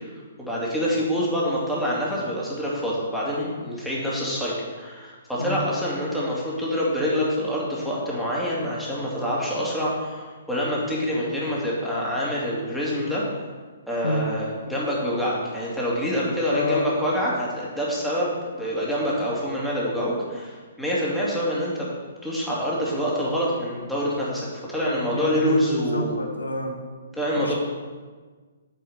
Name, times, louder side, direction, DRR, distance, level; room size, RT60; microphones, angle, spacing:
voice 1, 0.4-13.2 13.9-21.9 22.2-26.1 27.1-27.5, equal, ahead, -8 dB, 2.7 m, -26 dB
voice 2, 16.5-16.9 25.1-26.8 27.4-27.5, left 2 dB, 80° left, 2 dB, 1.3 m, -28 dB
8.9 x 5.6 x 6.9 m, 1.4 s
figure-of-eight pair, 130°, 0 cm